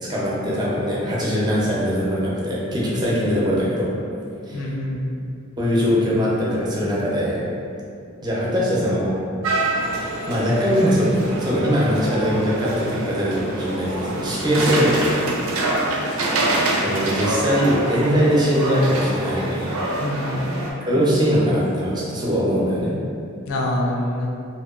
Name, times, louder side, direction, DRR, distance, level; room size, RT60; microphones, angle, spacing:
voice 1, 0.0-3.9 4.4-4.6 5.6-7.4 8.2-9.1 10.3-15.3 16.8-19.7 20.9-22.9, equal, 20° right, -6 dB, 0.4 m, -21 dB
voice 2, 4.5-5.2 14.5-14.7 20.0-20.6 23.5-24.3, left 1 dB, 70° left, -1 dB, 0.4 m, -25 dB
sound 1, 9.4-20.7, right 2 dB, 85° right, 0.4 m, -25 dB
2.6 x 2.2 x 2.3 m, 2.5 s
head